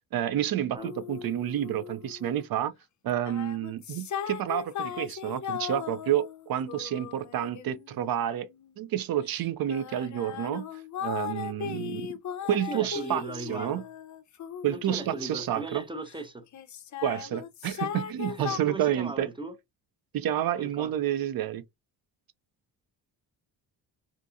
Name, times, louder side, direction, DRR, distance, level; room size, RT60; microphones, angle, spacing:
voice 1, 0.1-2.7 3.0-8.5 8.8-10.6 11.0-12.1 12.4-13.2 13.5-13.8 14.6-15.8 17.0-19.3 20.1-21.6, right 11 dB, 50° right, 0.5 m, -29 dB
sound 1, 0.8-2.4 3.1-8.7 9.3-16.2 16.5-18.6, left 9 dB, 40° left, 0.5 m, -38 dB
voice 2, 12.5-13.9 14.7-16.5 18.3-19.6 20.5-20.9, right 2 dB, 10° right, 0.7 m, -38 dB
2.6 x 2.5 x 2.3 m
supercardioid pair, 70°, 45 cm